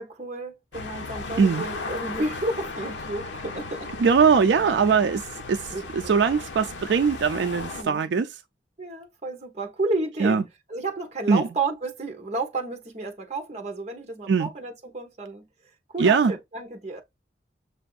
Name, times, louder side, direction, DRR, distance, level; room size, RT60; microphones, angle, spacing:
voice 1, 0.0-4.0 5.7-6.1 7.7-8.0 8.8-10.4 10.7-15.4 15.9-17.0, right 2 dB, 35° right, 0.9 m, -31 dB
sound 1, 0.7-7.8, left 3 dB, 85° left, 0.7 m, -36 dB
voice 2, 4.0-5.2 5.5-8.3 10.2-10.4 11.3-11.4 14.3-14.5 16.0-16.3, right 5 dB, 75° right, 0.4 m, -21 dB
6.8 x 2.6 x 2.3 m
head